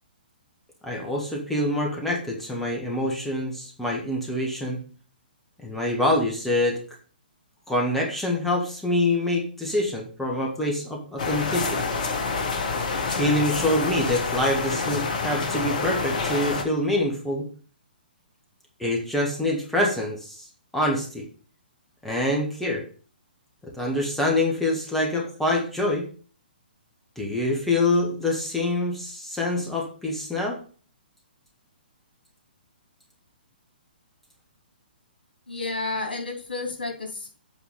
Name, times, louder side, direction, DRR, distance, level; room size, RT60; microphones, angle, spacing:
voice 1, 0.8-4.8 5.6-6.8 7.7-11.8 13.1-17.5 18.8-20.5 20.7-21.2 22.0-22.8 23.6-26.1 27.2-30.6, left 1 dB, 5° left, -1 dB, 1.4 m, -25 dB
sound 1, 11.2-16.6, left 4 dB, 45° left, 1.5 m, -27 dB
voice 2, 35.5-37.3, left 3 dB, 70° left, 2 dB, 3.0 m, -31 dB
8.2 x 4.8 x 5.1 m, 0.40 s
figure-of-eight pair, 125°, 5 cm